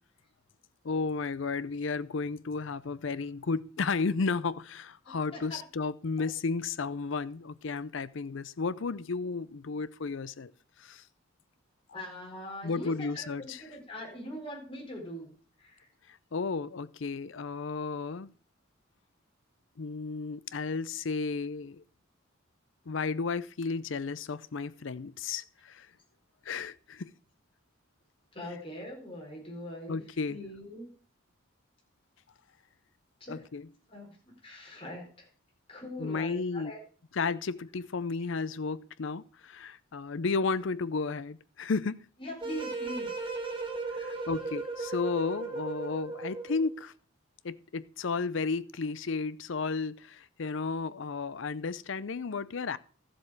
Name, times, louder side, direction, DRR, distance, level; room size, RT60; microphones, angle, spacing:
voice 1, 0.8-10.5 10.8-11.0 12.6-13.6 16.1-18.3 19.8-21.8 22.9-25.9 26.4-27.1 29.9-30.4 33.3-33.7 36.0-36.7 37.1-42.1 43.9-46.9 47.4-52.8, left 4 dB, 65° left, 0.5 m, -33 dB
voice 2, 11.9-15.3 15.6-15.9 28.3-30.0 30.3-30.9 33.2-33.4 33.9-34.2 34.4-35.3 35.7-36.8 42.2-43.1 44.1-44.3, left 1 dB, 25° left, 4.4 m, -42 dB
sound 1, 42.4-46.7, right 3 dB, 25° right, 1.7 m, -36 dB
13.5 x 7.5 x 4.8 m
head